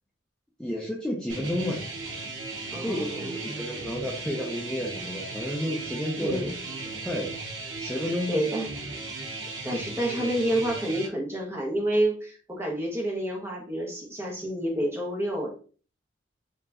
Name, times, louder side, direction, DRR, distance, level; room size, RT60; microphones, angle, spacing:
voice 1, 0.6-1.8 2.8-6.4 6.8-7.3 7.8-8.4 9.7-9.8, left 1 dB, 5° left, -4 dB, 0.6 m, -31 dB
sound 1, 1.3-11.1, right 3 dB, 85° right, 1.4 m, -36 dB
voice 2, 2.7-3.4 6.2-6.5 8.3-8.7 9.6-15.5, right 1 dB, 15° right, -1 dB, 1.1 m, -29 dB
4.7 x 3.0 x 2.6 m, 0.39 s
head